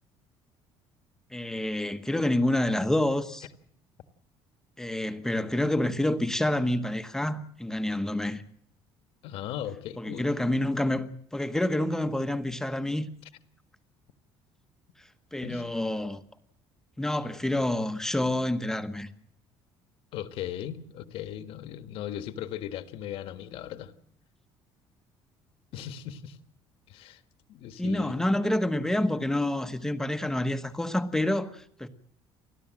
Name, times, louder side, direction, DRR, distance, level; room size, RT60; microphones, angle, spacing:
voice 1, 1.3-3.5 4.8-8.4 10.0-13.1 15.3-16.2 17.0-19.1 27.8-31.9, left 1 dB, 5° left, 1.1 m, -28 dB
voice 2, 9.2-10.3 15.4-15.7 20.1-23.9 25.7-26.4 26.9-27.2 27.5-28.1, left 10 dB, 65° left, 1.6 m, -38 dB
29.5 x 12.0 x 7.6 m
cardioid pair, 155°, 10 cm